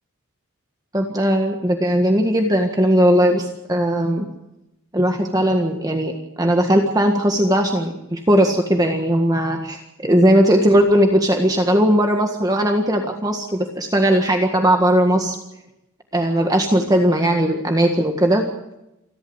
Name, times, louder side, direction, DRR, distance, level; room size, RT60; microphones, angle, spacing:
voice 1, 0.9-4.2 4.9-15.4 16.1-18.4, equal, 15° right, 3 dB, 1.7 m, -18 dB
28.0 x 12.5 x 8.0 m, 0.89 s
head